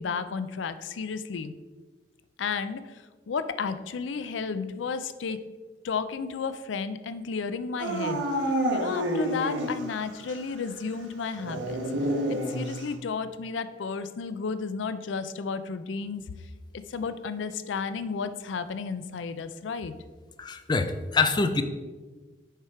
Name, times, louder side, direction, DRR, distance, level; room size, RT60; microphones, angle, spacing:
voice 1, 0.0-1.5 2.4-5.4 5.8-8.2 8.7-11.8 12.3-16.2 16.9-19.9, left 5 dB, 85° left, 12 dB, 0.4 m, -33 dB
Dog / Siren, 7.8-10.0 10.3-10.4 11.4-12.9, right 1 dB, 85° right, 1.2 m, -28 dB
voice 2, 20.4-21.6, left 4 dB, 25° left, 8 dB, 0.4 m, -25 dB
6.6 x 4.9 x 4.4 m, 1.3 s
head